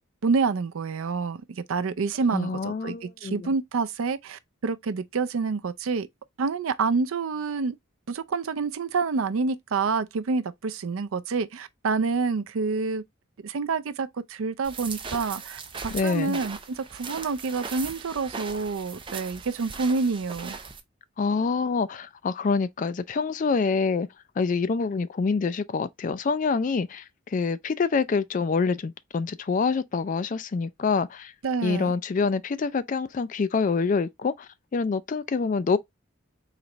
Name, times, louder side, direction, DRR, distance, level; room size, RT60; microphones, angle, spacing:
voice 1, 0.2-1.4 1.7-6.1 6.4-7.8 8.1-13.0 13.4-20.6 31.4-31.9, right 4 dB, 75° right, 0.5 m, -28 dB
voice 2, 2.3-3.5 15.9-16.4 21.2-24.1 24.4-31.3 31.6-35.8, left 4 dB, 40° left, 0.3 m, -26 dB
sound 1, 14.6-20.8, right 5 dB, 25° right, 0.5 m, -39 dB
4.1 x 3.0 x 3.2 m
head